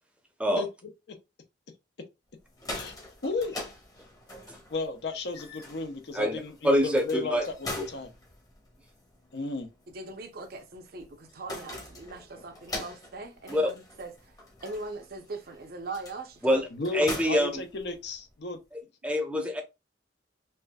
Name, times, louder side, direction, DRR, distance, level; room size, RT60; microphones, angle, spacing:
sound 1, 2.4-18.3, left 1 dB, 20° left, 0.9 m, -43 dB
voice 1, 3.2-3.5 4.7-8.1 9.3-9.7 16.7-18.6, left 3 dB, 65° left, 0.7 m, -34 dB
voice 2, 6.1-7.4 7.8-7.9 13.5-13.7 16.4-16.7 16.9-17.6 18.7-19.6, equal, 5° right, 0.7 m, -26 dB
voice 3, 9.9-14.1 14.6-16.6, right 3 dB, 55° right, 0.6 m, -40 dB
4.2 x 2.6 x 2.2 m
head